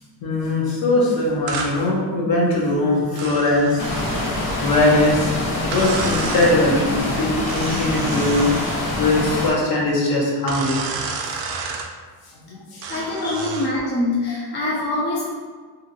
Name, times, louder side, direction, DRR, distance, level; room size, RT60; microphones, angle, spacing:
voice 1, 0.2-3.8 4.6-8.5 9.0-10.9 11.2-11.3 12.4-12.9 13.2-13.3 14.3-14.4, left 2 dB, 55° left, -3 dB, 0.8 m, -21 dB
sound 1, 1.5-1.8 3.2-4.4 5.7-6.6 7.5-8.8 10.5-11.9 12.8-13.7, right 4 dB, 80° right, 0.5 m, -30 dB
sound 2, 3.8-9.5, left 1 dB, 85° left, 1.0 m, -25 dB
voice 2, 12.9-15.3, left 2 dB, 25° left, -5 dB, 0.4 m, -24 dB
2.7 x 2.6 x 2.6 m, 1.5 s
cardioid pair, 150°, 45 cm